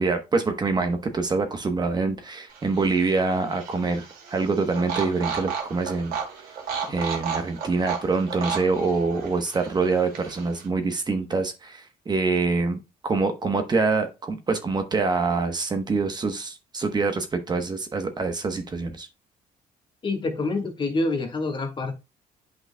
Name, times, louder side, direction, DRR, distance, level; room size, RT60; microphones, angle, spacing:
voice 1, 0.0-6.2 6.9-19.1, right 4 dB, 30° right, 1.0 m, -25 dB
sound 1, 2.5-10.7, right 7 dB, 75° right, 2.3 m, -34 dB
voice 2, 20.0-21.9, left 2 dB, 30° left, 1.5 m, -27 dB
8.7 x 5.4 x 2.2 m
cardioid pair, 110°, 15 cm